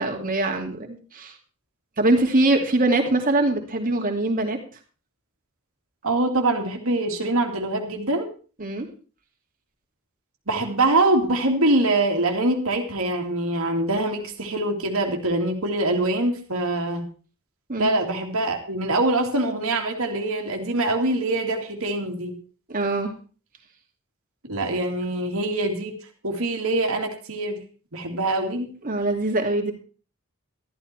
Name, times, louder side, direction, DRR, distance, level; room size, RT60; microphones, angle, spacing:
voice 1, 0.0-1.3 2.0-4.6 8.6-8.9 17.7-17.9 22.7-23.1 28.8-29.7, right 2 dB, 40° right, 3 dB, 2.6 m, -23 dB
voice 2, 6.0-8.3 10.5-17.0 17.8-22.4 24.4-25.9 26.2-27.6 27.9-28.7, right 2 dB, 70° right, 2 dB, 2.5 m, -24 dB
14.0 x 12.5 x 4.5 m, 0.37 s
head